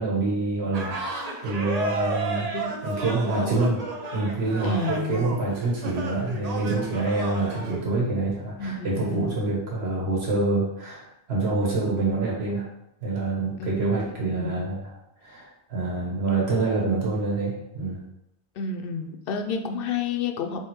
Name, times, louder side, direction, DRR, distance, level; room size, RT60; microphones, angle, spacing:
voice 1, 0.0-2.5 2.8-3.8 4.1-12.7 13.0-14.9 15.2-18.0, right 3 dB, 80° right, -4 dB, 1.5 m, -26 dB
sound 1, 0.7-7.8, right 2 dB, 45° right, 0.6 m, -32 dB
voice 2, 3.2-3.9 4.6-5.2 8.6-9.4 13.6-13.7 14.3-14.6 18.6-20.6, left 4 dB, 65° left, 5 dB, 0.7 m, -30 dB
3.6 x 3.0 x 4.3 m, 0.83 s
omnidirectional pair, 1.1 m